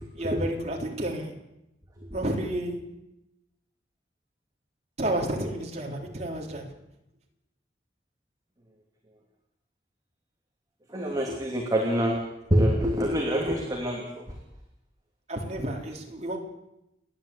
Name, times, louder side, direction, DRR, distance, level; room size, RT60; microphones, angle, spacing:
voice 1, 0.1-1.3 2.1-2.8 5.0-6.7 15.3-16.4, right 1 dB, 40° right, 0 dB, 3.9 m, -31 dB
voice 2, 10.9-12.2 12.5-14.2, equal, 20° right, -1 dB, 2.9 m, -25 dB
29.5 x 11.5 x 8.5 m, 0.90 s
head